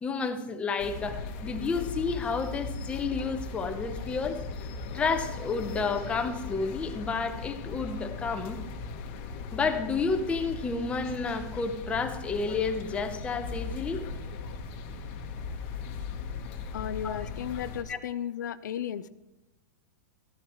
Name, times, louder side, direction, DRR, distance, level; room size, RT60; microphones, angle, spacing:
voice 1, 0.0-4.4 4.9-8.6 9.5-14.0 17.0-17.2 17.9-18.0, left 4 dB, 10° left, 6 dB, 0.8 m, -30 dB
sound 1, 0.8-17.8, left 4 dB, 40° left, 1.2 m, -38 dB
voice 2, 16.7-19.1, left 10 dB, 85° left, 13 dB, 0.6 m, -34 dB
13.5 x 12.0 x 3.1 m, 0.99 s
supercardioid pair, 155°, 10 cm